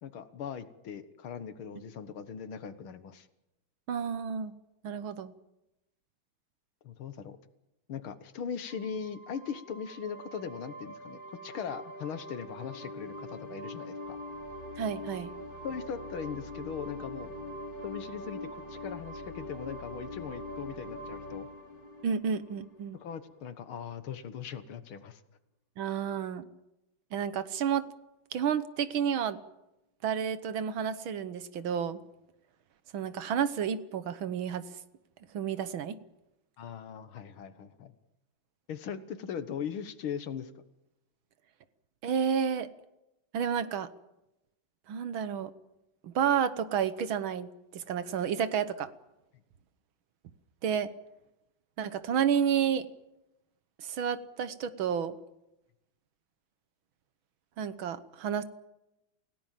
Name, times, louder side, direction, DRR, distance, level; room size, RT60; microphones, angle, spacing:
voice 1, 0.0-3.3 6.8-7.4 7.9-14.2 15.6-17.3 17.8-21.5 23.0-25.2 36.6-37.9 38.7-40.5, left 7 dB, 70° left, 12 dB, 2.1 m, -39 dB
voice 2, 3.9-4.5 4.8-5.3 14.8-15.3 22.0-23.0 25.8-26.5 27.1-27.8 28.3-29.4 30.0-32.0 32.9-34.6 35.3-36.0 42.0-42.7 43.3-43.9 44.9-45.5 46.0-48.9 50.6-50.9 51.8-52.9 53.8-55.2 57.6-58.4, right 8 dB, 70° right, 13 dB, 1.8 m, -30 dB
sound 1, 8.7-23.1, left 1 dB, 20° left, 3.3 m, -43 dB
28.5 x 17.0 x 7.5 m, 0.92 s
omnidirectional pair, 2.4 m